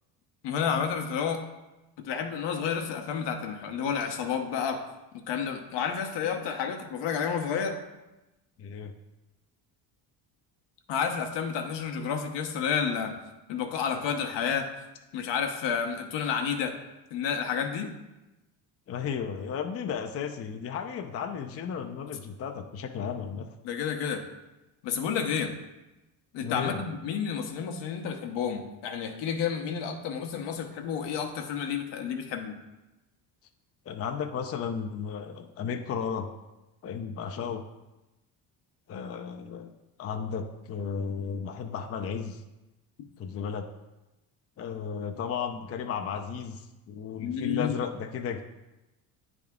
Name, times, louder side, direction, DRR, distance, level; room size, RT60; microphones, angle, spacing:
voice 1, 0.4-1.4 2.0-4.8 5.3-7.8 10.9-13.2 13.5-14.7 15.1-16.7 17.1-17.9 23.6-24.2 24.8-25.5 26.3-32.6 47.2-47.8, left 7 dB, 70° left, 5 dB, 1.0 m, -30 dB
voice 2, 8.6-8.9 18.9-23.5 26.4-26.8 33.9-36.3 36.8-37.6 38.9-39.7 40.0-42.4 43.2-43.7 44.6-48.4, left 7 dB, 35° left, 5 dB, 0.5 m, -34 dB
9.1 x 3.6 x 3.6 m, 1.0 s
supercardioid pair, 85°, 44 cm